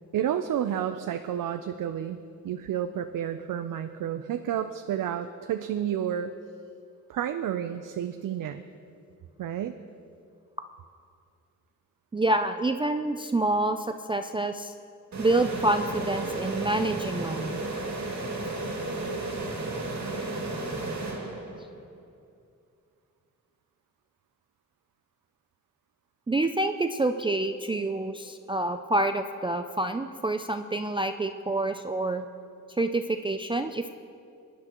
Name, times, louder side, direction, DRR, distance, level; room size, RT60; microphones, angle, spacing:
voice 1, 0.1-2.2 2.4-6.3 7.1-8.6 9.4-9.8, right 9 dB, 75° right, 8 dB, 0.5 m, -30 dB
voice 2, 12.1-14.7 15.2-17.6 26.3-32.3 32.8-33.9, right 2 dB, 15° right, 6 dB, 0.3 m, -27 dB
sound 1, 15.1-21.8, right 2 dB, 60° right, 2.2 m, -33 dB
19.5 x 10.5 x 3.0 m, 2.4 s
wide cardioid pair, 100°, 32 cm